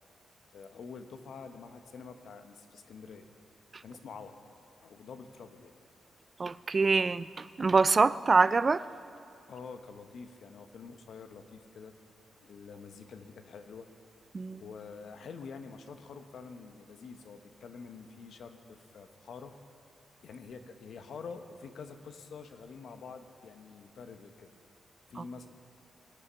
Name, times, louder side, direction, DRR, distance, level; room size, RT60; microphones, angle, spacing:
voice 1, 0.5-3.3 3.8-4.3 4.8-5.7 9.5-11.9 12.4-13.9 14.5-19.5 20.2-24.5 25.1-25.5, left 5 dB, 70° left, 8 dB, 1.0 m, -47 dB
voice 2, 6.4-8.8 14.3-14.6, right 4 dB, 35° right, 16 dB, 0.3 m, -25 dB
21.5 x 8.5 x 5.7 m, 2.6 s
cardioid pair, 115°, 0 cm